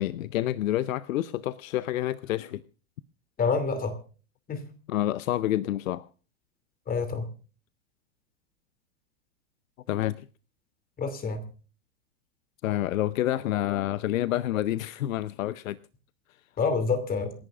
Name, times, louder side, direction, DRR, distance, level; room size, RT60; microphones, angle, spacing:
voice 1, 0.0-2.6 4.9-6.0 9.9-10.3 12.6-15.8, left 13 dB, 70° left, 16 dB, 0.7 m, -28 dB
voice 2, 3.4-4.0 4.5-4.6 6.9-7.2 11.0-11.4 16.6-17.3, left 4 dB, 20° left, 10 dB, 2.7 m, -27 dB
27.5 x 11.5 x 2.4 m, 0.38 s
hypercardioid pair, 125°, 42 cm